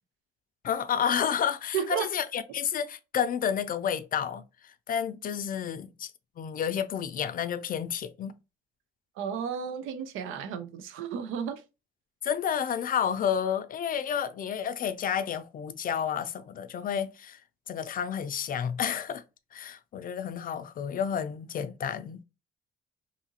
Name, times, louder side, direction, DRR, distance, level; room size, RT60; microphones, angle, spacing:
voice 1, 0.6-4.4 4.9-6.1 6.4-8.3 12.2-17.4 17.7-19.2 19.5-22.2, left 8 dB, 45° left, 0.4 m, -30 dB
voice 2, 1.7-2.1 9.2-11.6, right 7 dB, 90° right, 0.5 m, -33 dB
2.7 x 2.4 x 2.7 m
cardioid pair, 90°, 20 cm